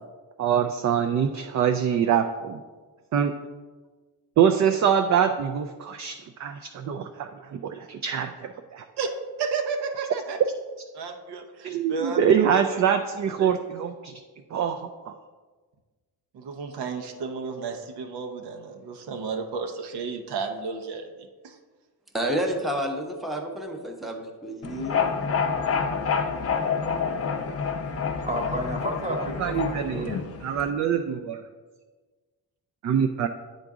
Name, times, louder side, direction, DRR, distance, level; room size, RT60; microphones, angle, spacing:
voice 1, 0.4-2.6 3.1-3.3 4.4-8.8 11.6-14.1 14.5-15.1 29.4-31.4 32.8-33.3, right 8 dB, 45° right, 6 dB, 0.4 m, -24 dB
voice 2, 9.4-10.4 10.9-12.5 13.4-13.5 16.3-21.6, right 5 dB, 85° right, 4 dB, 0.8 m, -32 dB
voice 3, 22.1-25.1, right 1 dB, ahead, 2 dB, 0.8 m, -30 dB
sound 1, 24.6-30.7, left 6 dB, 40° left, 0.5 m, -28 dB
voice 4, 27.9-30.1, equal, 15° right, 2 dB, 1.1 m, -32 dB
8.9 x 3.9 x 3.6 m, 1.4 s
cardioid pair, 100°, 39 cm